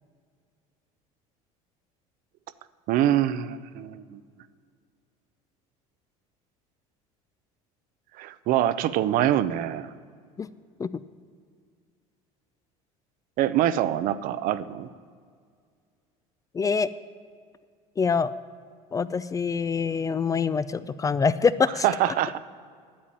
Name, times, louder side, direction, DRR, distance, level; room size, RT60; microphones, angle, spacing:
voice 1, 2.9-4.2 8.2-9.9 13.4-14.9 21.8-22.4, right 12 dB, 60° right, 14 dB, 0.5 m, -24 dB
voice 2, 16.5-16.9 18.0-18.3 18.9-21.8, left 5 dB, 20° left, 15 dB, 0.3 m, -24 dB
9.0 x 8.7 x 8.8 m, 2.1 s
supercardioid pair, 100°, 16 cm